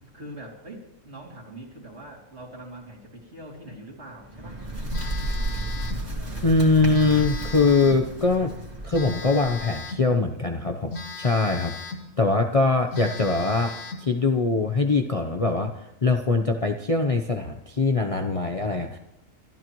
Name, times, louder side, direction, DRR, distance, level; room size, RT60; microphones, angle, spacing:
voice 1, 0.0-4.6, right 1 dB, 55° right, -1 dB, 3.3 m, -43 dB
Bird, 4.2-9.9, right 1 dB, 30° right, 2.3 m, -33 dB
Telephone, 4.9-6.1 6.9-8.1 8.9-10.1 10.9-12.1 12.5-12.6 12.9-14.1, left 3 dB, 65° left, 1.9 m, -37 dB
voice 2, 6.4-8.5 8.8-11.7 12.2-13.8 14.0-15.7 16.0-19.0, left 3 dB, 30° left, 4 dB, 0.7 m, -22 dB
24.5 x 13.0 x 3.1 m, 0.87 s
omnidirectional pair, 1.4 m